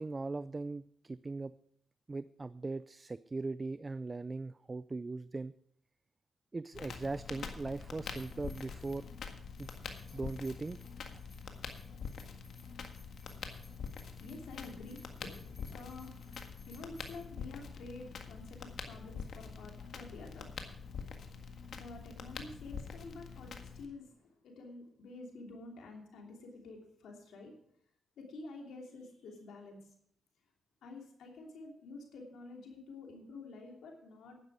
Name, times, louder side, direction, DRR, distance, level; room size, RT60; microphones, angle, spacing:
voice 1, 0.0-1.5 2.1-5.5 6.5-9.1 9.6-9.7 10.1-10.8, right 3 dB, 30° right, 15 dB, 0.4 m, -39 dB
Crackle, 6.7-23.9, left 5 dB, 75° left, 1.7 m, -45 dB
sound 1, 8.0-17.2, left 4 dB, 50° left, 4.2 m, -63 dB
voice 2, 14.0-27.6 28.2-29.9 30.8-34.4, left 3 dB, 90° left, 1 dB, 2.9 m, -49 dB
11.0 x 10.5 x 4.9 m, 0.67 s
cardioid pair, 75°, 0 cm